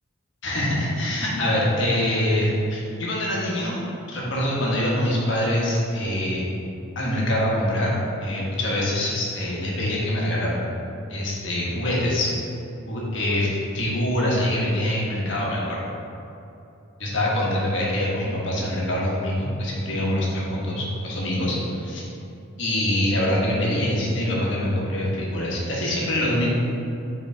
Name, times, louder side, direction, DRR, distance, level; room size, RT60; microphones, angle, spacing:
voice 1, 0.4-3.8 4.1-6.4 6.9-10.7 11.1-12.3 12.9-15.8 17.0-22.0 22.6-26.5, left 1 dB, 70° left, -4 dB, 1.4 m, -24 dB
5.9 x 4.2 x 4.4 m, 2.8 s
head